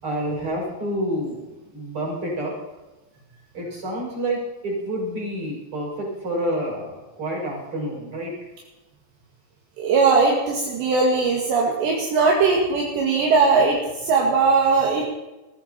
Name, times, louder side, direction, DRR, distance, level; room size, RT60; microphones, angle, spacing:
voice 1, 0.0-2.5 3.5-8.3, right 1 dB, 25° right, -3 dB, 7.1 m, -28 dB
voice 2, 9.8-15.0, right 4 dB, 70° right, -1 dB, 4.0 m, -19 dB
22.0 x 14.5 x 4.3 m, 1.1 s
omnidirectional pair, 5.5 m